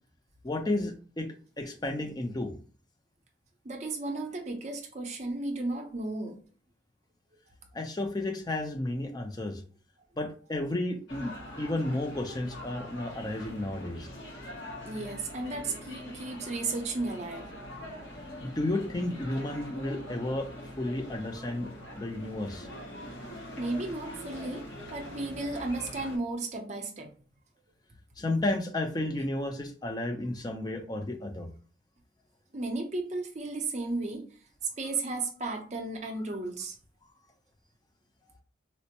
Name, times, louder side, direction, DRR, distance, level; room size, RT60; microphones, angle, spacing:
voice 1, 0.4-1.3 1.6-2.5 7.7-9.6 10.2-11.3 11.6-14.1 18.4-20.5 20.8-21.7 22.0-22.7 28.2-31.5, left 2 dB, 20° left, 4 dB, 0.5 m, -32 dB
voice 2, 3.6-6.4 14.8-17.5 23.6-27.1 32.5-34.2 34.8-36.8, right 2 dB, 35° right, 3 dB, 0.6 m, -34 dB
sound 1, 11.1-26.2, left 1 dB, 70° left, 1.0 m, -43 dB
4.3 x 2.0 x 2.8 m, 0.41 s
head